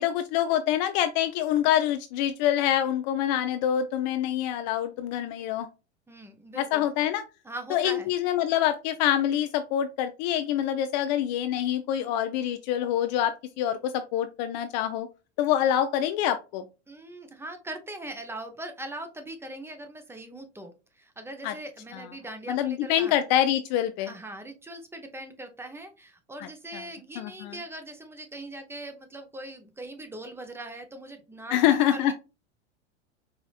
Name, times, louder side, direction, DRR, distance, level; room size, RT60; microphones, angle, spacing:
voice 1, 0.0-5.7 6.6-7.2 7.7-15.1 15.4-16.6 21.4-21.5 22.5-24.1 26.4-26.8 27.2-27.6 31.5-32.1, left 11 dB, 40° left, 9 dB, 0.4 m, -26 dB
voice 2, 6.1-6.9 7.4-8.1 16.9-23.2 24.1-32.1, right 1 dB, 5° right, 6 dB, 0.7 m, -41 dB
4.9 x 3.0 x 2.4 m, 0.29 s
hypercardioid pair, 90°, 35 cm